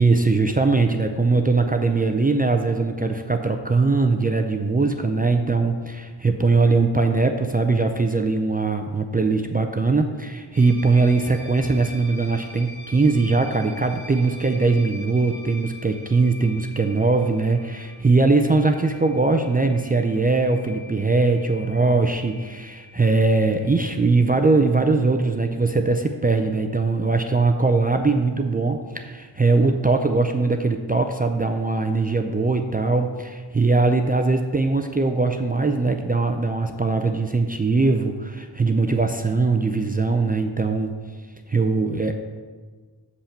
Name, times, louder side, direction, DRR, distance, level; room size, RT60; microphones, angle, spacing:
voice 1, 0.0-40.9 41.5-42.1, right 3 dB, 20° right, 5 dB, 0.5 m, -21 dB
sound 1, 10.5-24.2, equal, 35° left, 2.0 m, -44 dB
6.9 x 5.6 x 5.8 m, 1.5 s
wide cardioid pair, 75°, 44 cm